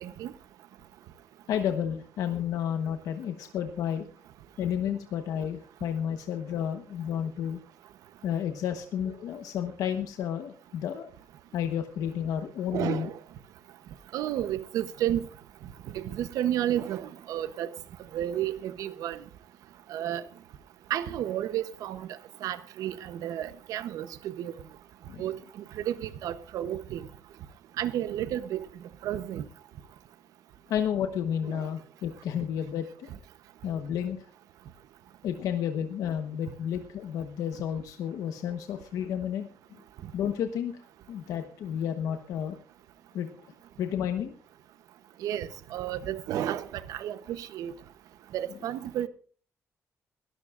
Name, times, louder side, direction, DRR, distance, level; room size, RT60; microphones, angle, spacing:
voice 1, 0.0-0.3 12.7-13.2 14.1-15.3 15.9-17.7 18.1-19.2 19.9-20.2 20.9-22.1 22.4-24.5 25.2-25.4 25.8-27.1 27.8-28.6 29.0-29.5 31.5-31.7 45.2-47.7 48.3-49.1, right 11 dB, 90° right, 0.8 m, -31 dB
voice 2, 1.5-4.1 4.6-7.6 8.2-11.1 11.5-13.1 25.1-25.2 30.7-33.1 33.6-34.2 35.2-39.5 40.1-42.6 43.1-43.4 43.8-44.3, left 9 dB, 85° left, 1.1 m, -31 dB
21.5 x 13.5 x 2.5 m
cardioid pair, 160°, 6 cm